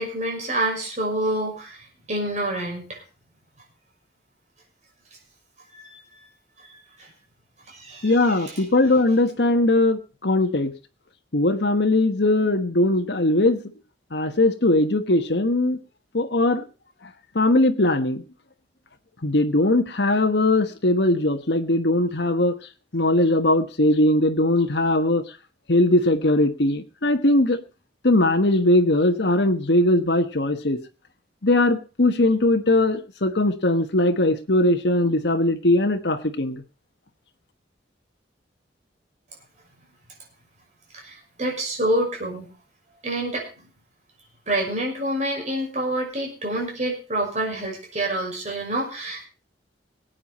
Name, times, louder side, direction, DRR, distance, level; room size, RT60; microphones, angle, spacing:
voice 1, 0.0-1.8 2.1-3.0 5.7-6.0 7.0-7.1 7.7-8.5 40.9-42.5 43.0-43.5 44.5-49.2, right 1 dB, 40° right, 0 dB, 5.9 m, -27 dB
voice 2, 8.0-10.7 11.3-13.6 14.1-15.8 16.1-16.6 17.3-18.2 19.2-22.6 22.9-25.3 25.7-27.6 28.0-30.8 31.4-36.6, left 1 dB, 65° left, 6 dB, 1.3 m, -20 dB
20.0 x 9.1 x 4.3 m, 0.33 s
head